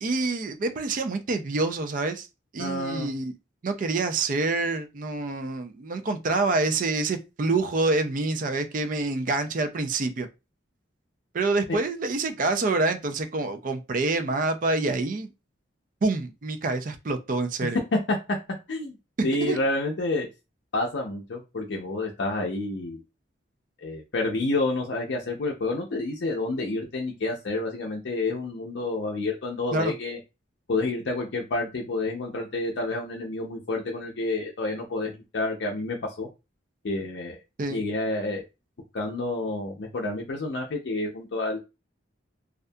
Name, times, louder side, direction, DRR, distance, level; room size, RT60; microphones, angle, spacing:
voice 1, 0.0-2.3 2.5-3.3 3.6-10.3 11.3-15.3 16.0-17.8 19.4-19.6 29.7-29.9 37.6-37.8, right 3 dB, 45° right, 0.4 m, -27 dB
voice 2, 2.6-3.1 17.9-18.4 18.7-19.0 19.2-20.3 20.7-23.0 23.8-30.2 30.7-36.3 36.8-37.4 37.7-38.4 38.9-41.6, left 2 dB, 65° left, 0.5 m, -29 dB
2.6 x 2.3 x 2.2 m
head